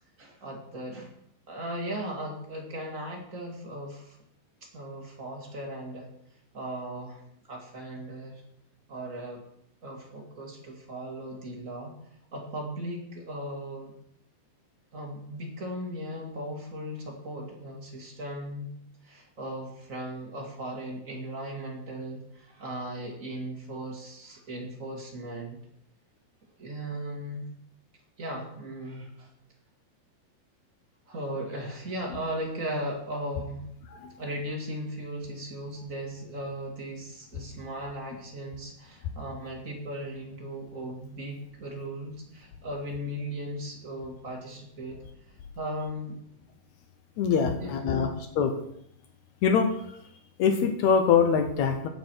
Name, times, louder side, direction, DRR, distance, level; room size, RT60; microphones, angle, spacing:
voice 1, 0.2-1.1 1.5-4.2 4.6-6.1 6.5-7.2 7.5-8.4 8.9-9.4 9.8-11.9 12.3-13.9 14.9-18.7 19.0-25.6 26.6-27.5 28.2-29.3 31.1-33.7 34.2-45.0 45.5-46.2 47.4-48.1, right 1 dB, 40° right, 0 dB, 1.2 m, -37 dB
voice 2, 47.2-48.1 48.4-48.5 49.4-49.7 50.4-51.9, left 6 dB, 85° left, 6 dB, 1.6 m, -23 dB
14.0 x 8.5 x 4.5 m, 0.72 s
omnidirectional pair, 4.6 m